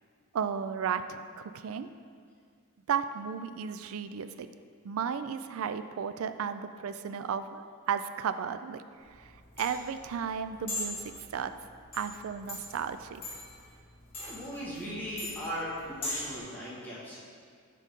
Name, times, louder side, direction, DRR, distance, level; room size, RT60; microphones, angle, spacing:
voice 1, 0.3-1.9 2.9-4.5 4.8-8.8 9.1-11.0 11.3-11.5 11.9-13.2, right 7 dB, 65° right, 10 dB, 0.3 m, -34 dB
sound 1, 9.0-16.4, left 1 dB, 25° left, 1.9 m, -40 dB
voice 2, 14.2-17.2, equal, 10° left, -8 dB, 1.7 m, -38 dB
8.3 x 3.8 x 5.3 m, 2.1 s
head